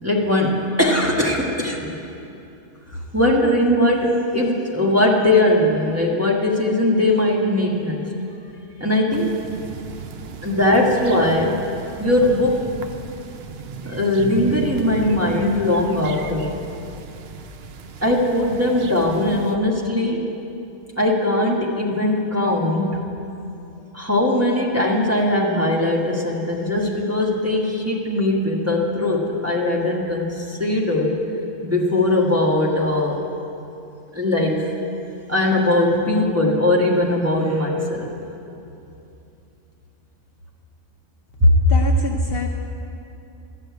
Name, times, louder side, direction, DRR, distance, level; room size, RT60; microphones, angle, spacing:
voice 1, 0.0-1.9 2.9-8.1 8.8-9.4 10.4-11.6 12.0-12.6 13.8-16.6 18.0-20.3 21.0-23.0 23.9-31.2 31.6-33.2 34.1-34.7 35.3-38.1 41.4-41.5, left 1 dB, 10° right, -4 dB, 1.3 m, -20 dB
sound 1, 9.1-19.6, right 6 dB, 60° right, 0.8 m, -36 dB
voice 2, 41.7-42.5, left 3 dB, 55° left, 1 dB, 0.9 m, -26 dB
12.5 x 6.7 x 9.4 m, 2.8 s
omnidirectional pair, 1.4 m